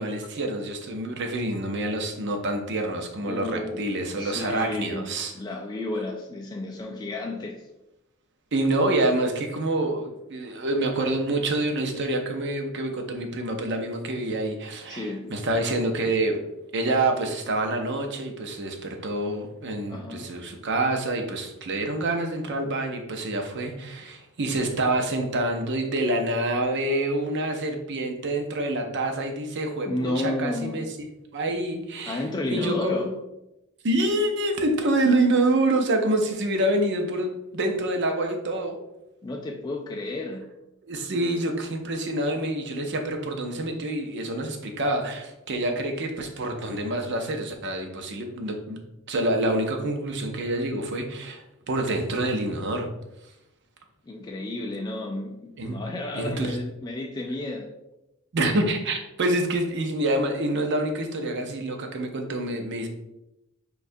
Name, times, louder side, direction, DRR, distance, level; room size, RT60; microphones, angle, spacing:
voice 1, 0.0-5.3 8.5-16.4 16.7-31.1 31.3-32.2 32.5-33.0 33.8-38.8 40.8-48.8 49.1-52.9 55.6-55.8 56.1-56.6 58.3-62.9, right 1 dB, 55° right, 4 dB, 0.6 m, -27 dB
voice 2, 3.2-3.9 4.2-5.1 5.3-7.6 14.9-15.3 16.0-16.2 19.9-20.3 29.8-30.8 32.1-33.1 39.2-40.4 54.1-57.7, left 2 dB, 20° left, 0 dB, 0.3 m, -32 dB
6.4 x 2.3 x 2.6 m, 0.90 s
head